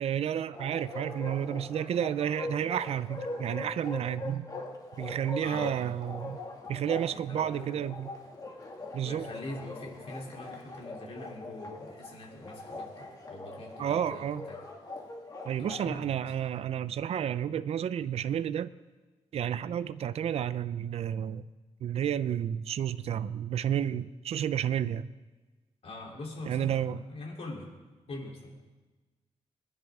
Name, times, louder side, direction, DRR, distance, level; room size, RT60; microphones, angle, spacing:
voice 1, 0.0-4.5 4.9-6.4 6.7-8.1 8.9-9.3 13.8-14.4 15.5-18.7 19.3-21.5 21.8-25.1 26.5-27.0, right 9 dB, 65° right, 14 dB, 0.4 m, -31 dB
Bark, 0.5-15.9, left 2 dB, 35° left, 2.1 m, -42 dB
voice 2, 5.4-6.0 7.1-7.8 9.0-14.6 15.6-16.2 25.8-27.7 28.1-28.5, left 2 dB, 60° left, -1 dB, 3.3 m, -43 dB
21.5 x 10.5 x 3.6 m, 1.2 s
cardioid pair, 100°, 11 cm